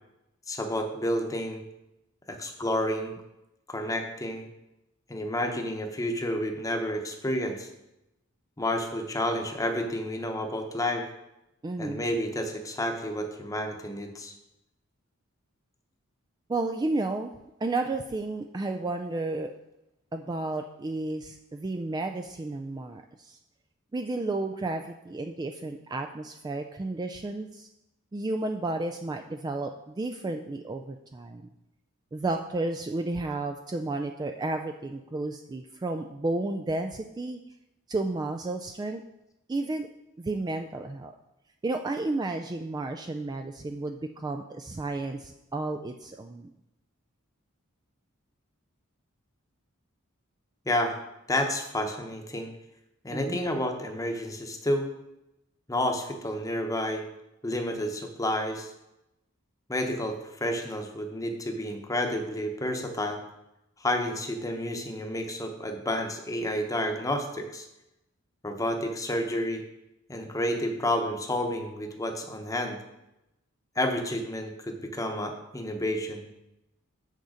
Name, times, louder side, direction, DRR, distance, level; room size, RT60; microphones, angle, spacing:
voice 1, 0.5-1.6 2.3-3.1 3.7-4.5 5.1-7.7 8.6-11.1 11.8-14.3 50.6-51.0 51.3-52.5 53.0-54.9 55.7-57.1 57.4-58.7 59.7-63.2 63.8-67.7 68.4-69.6 70.1-72.8 73.8-76.3, left 1 dB, 15° left, 4 dB, 0.9 m, -30 dB
voice 2, 11.6-12.1 16.5-17.3 17.6-19.5 20.1-23.4 23.9-27.7 28.1-31.4 32.1-37.4 37.9-39.0 39.5-39.9 40.2-41.1 41.6-46.5 53.1-53.4, right 2 dB, 20° right, 5 dB, 0.3 m, -32 dB
6.9 x 6.5 x 5.0 m, 0.90 s
head